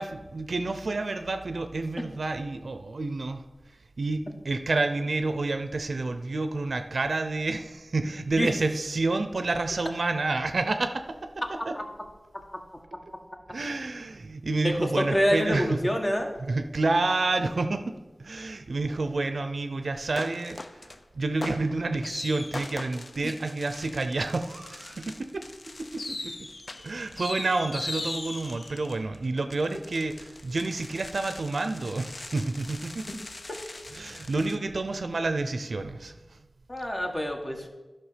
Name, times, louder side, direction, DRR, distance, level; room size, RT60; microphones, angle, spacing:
voice 1, 0.0-3.4 4.0-11.8 13.5-15.8 16.4-17.9 18.2-20.6 21.1-25.5 25.8-26.5 26.8-33.0 33.9-36.4, right 3 dB, 85° right, 8 dB, 0.5 m, -29 dB
voice 2, 14.6-16.3 23.2-23.3 36.7-37.7, equal, 30° left, 2 dB, 1.4 m, -26 dB
sound 1, 20.2-21.0 21.4-34.6, left 2 dB, 55° left, 0.5 m, -40 dB
11.0 x 5.8 x 5.0 m, 1.2 s
wide cardioid pair, 55°, 0 cm